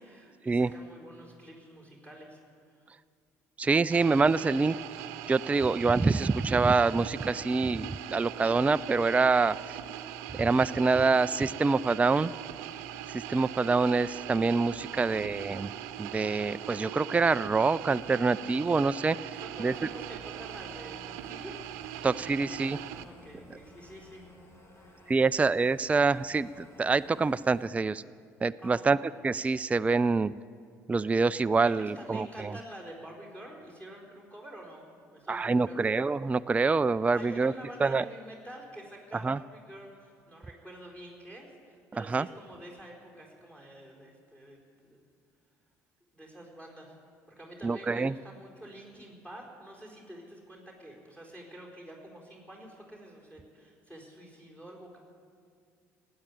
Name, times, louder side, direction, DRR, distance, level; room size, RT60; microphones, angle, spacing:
voice 1, 0.0-2.9 14.9-15.2 19.3-21.6 21.9-22.1 22.8-24.2 24.8-25.3 28.6-28.9 31.6-35.9 37.1-45.0 46.1-46.9 47.3-55.0, right 1 dB, 15° left, -2 dB, 4.6 m, -48 dB
voice 2, 3.6-4.8 5.3-9.6 10.3-12.3 13.1-15.7 16.0-19.2 19.6-19.7 22.0-22.8 25.1-28.0 28.4-30.3 30.9-32.5 35.3-37.5 37.8-38.0 39.2-39.4 42.1-42.3 47.6-48.1, right 4 dB, 15° right, 14 dB, 0.3 m, -26 dB
sound 1, 3.9-23.0, right 11 dB, 75° right, 0.8 m, -41 dB
sound 2, 19.7-27.7, left 1 dB, 30° left, 3.0 m, -55 dB
17.5 x 8.7 x 9.6 m, 2.2 s
hypercardioid pair, 60°, 8 cm